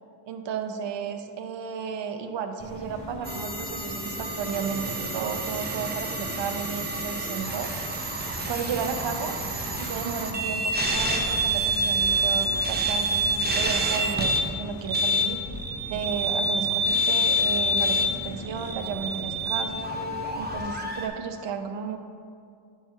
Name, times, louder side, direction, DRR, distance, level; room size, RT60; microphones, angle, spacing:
voice 1, 0.3-7.7 8.5-9.3 9.8-15.4 15.9-19.8 20.3-22.0, right 6 dB, 60° right, 6 dB, 0.7 m, -33 dB
sound 1, 2.6-20.6, equal, 15° left, 2.0 m, -39 dB
sound 2, 3.2-14.5 14.8-21.1, right 1 dB, 20° right, 0.8 m, -27 dB
9.0 x 4.6 x 4.5 m, 2.2 s
wide cardioid pair, 115°, 50 cm